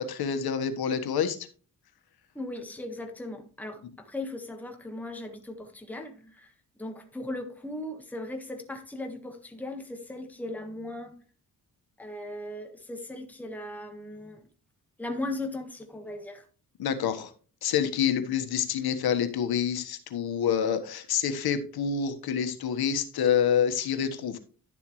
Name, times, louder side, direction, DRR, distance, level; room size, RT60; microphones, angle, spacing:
voice 1, 0.0-1.4 16.8-17.3 17.6-24.4, left 8 dB, 85° left, 1.5 m, -27 dB
voice 2, 2.3-6.5 6.8-11.1 12.0-14.4 15.0-16.4, left 1 dB, 5° left, 1.5 m, -38 dB
11.5 x 7.3 x 3.2 m
cardioid pair, 100°, 36 cm